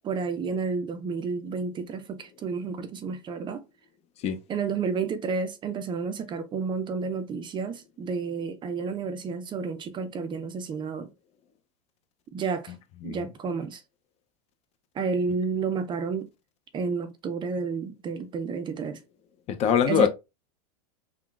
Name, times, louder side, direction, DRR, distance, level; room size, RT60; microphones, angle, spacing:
voice 1, 0.0-3.6 4.5-11.1 12.3-12.7 13.0-13.8 14.9-16.3 16.7-19.0 19.9-20.1, right 5 dB, 25° right, 0.4 m, -31 dB
voice 2, 19.5-20.1, left 8 dB, 35° left, 0.5 m, -23 dB
3.6 x 2.1 x 2.3 m
hypercardioid pair, 105°, 19 cm